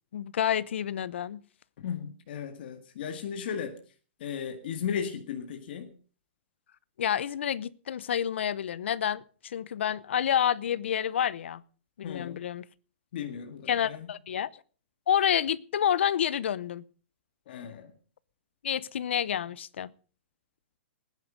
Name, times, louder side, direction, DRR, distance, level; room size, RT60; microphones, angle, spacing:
voice 1, 0.1-1.4 7.0-11.6 12.0-12.7 13.7-14.5 15.1-16.8 18.6-19.9, left 9 dB, 75° left, 0.8 m, -29 dB
voice 2, 1.8-3.7 4.2-5.9 12.0-12.4 13.1-14.1 17.5-17.9, left 7 dB, 55° left, 1.9 m, -36 dB
19.5 x 10.0 x 5.2 m
hypercardioid pair, 160°, 6 cm